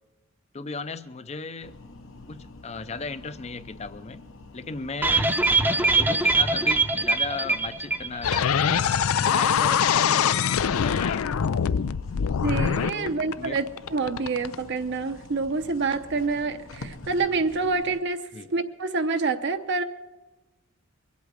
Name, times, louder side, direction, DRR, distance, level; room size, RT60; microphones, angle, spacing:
voice 1, 0.5-1.8 2.3-4.2 4.5-5.3 5.7-8.7 9.2-10.5 10.8-11.4 12.9-13.6 18.3-18.5, left 4 dB, 30° left, 0.6 m, -36 dB
sound 1, 1.6-18.0, left 2 dB, 70° left, 1.1 m, -47 dB
sound 2, 5.0-8.5 8.7-8.8 9.2-9.3, right 3 dB, 10° right, 0.7 m, -23 dB
sound 3, 8.2-14.5, left 7 dB, 85° left, 0.5 m, -23 dB
voice 2, 12.4-19.8, right 3 dB, 55° right, 0.8 m, -27 dB
23.0 x 8.4 x 6.4 m
head